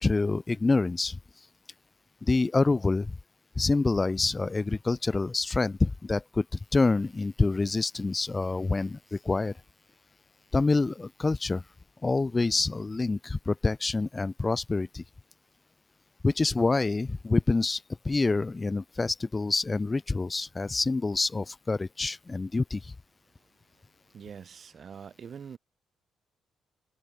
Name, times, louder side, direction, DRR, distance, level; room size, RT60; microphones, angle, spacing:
voice 1, 0.0-1.2 2.2-3.1 3.6-9.5 10.5-11.6 12.0-15.0 16.2-22.9, left 3 dB, 25° left, 0.7 m, -27 dB
voice 2, 24.1-25.6, right 7 dB, 50° right, 2.1 m, -44 dB
cardioid pair, 90°, 0 cm